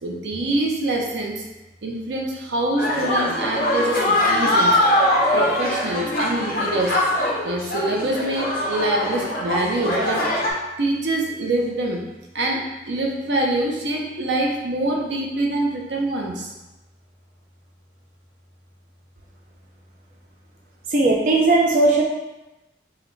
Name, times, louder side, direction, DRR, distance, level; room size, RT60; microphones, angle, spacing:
voice 1, 0.0-1.5 1.8-4.8 5.3-7.0 7.4-10.3 10.8-16.5, right 1 dB, 90° right, 0 dB, 0.7 m, -25 dB
sound 1, 2.8-10.5, left 1 dB, 50° left, 0.9 m, -22 dB
voice 2, 20.9-22.0, right 2 dB, 50° right, -2 dB, 0.4 m, -17 dB
4.7 x 2.2 x 3.2 m, 1.0 s
head